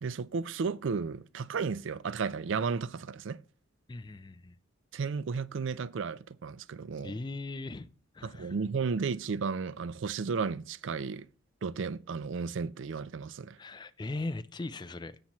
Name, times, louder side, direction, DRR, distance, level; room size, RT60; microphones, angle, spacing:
voice 1, 0.0-3.4 4.9-7.1 8.2-11.3 11.6-13.6, right 5 dB, 65° right, 0.4 m, -33 dB
voice 2, 3.9-4.6 7.0-7.9 8.1-8.5 13.6-15.2, left 2 dB, 20° left, 0.4 m, -39 dB
17.0 x 5.9 x 3.0 m
head